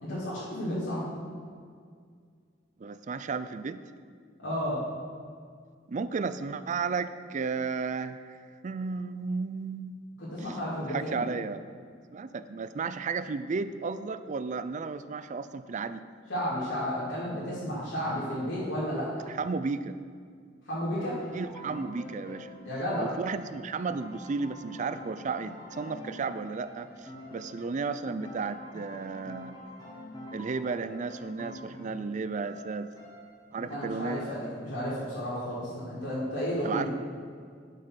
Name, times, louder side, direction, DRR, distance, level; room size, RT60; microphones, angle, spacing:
voice 1, 0.0-1.1 4.4-4.8 10.2-11.2 16.3-19.1 20.7-21.2 22.6-23.1 33.7-36.9, equal, 90° left, -10 dB, 2.6 m, -32 dB
voice 2, 2.8-3.8 5.9-10.0 10.4-10.6 10.9-11.6 12.1-16.0 19.3-20.0 21.3-22.6 23.0-29.6 30.3-32.9 33.5-34.3 36.6-36.9, right 4 dB, 40° right, 13 dB, 0.4 m, -33 dB
sound 1, 20.9-33.8, left 1 dB, 20° left, 1.6 m, -47 dB
11.0 x 5.4 x 5.7 m, 2.1 s
head